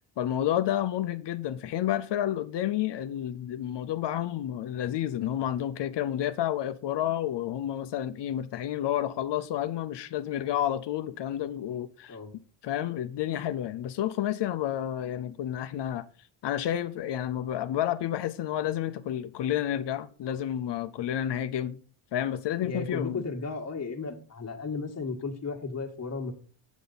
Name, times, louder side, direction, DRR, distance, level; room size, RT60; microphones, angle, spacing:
voice 1, 0.2-12.2 12.6-16.1 16.4-21.8 22.1-23.2, left 11 dB, 60° left, 0.7 m, -30 dB
voice 2, 22.6-26.3, left 4 dB, 30° left, 1.6 m, -34 dB
8.3 x 8.2 x 4.1 m
cardioid pair, 130°, 48 cm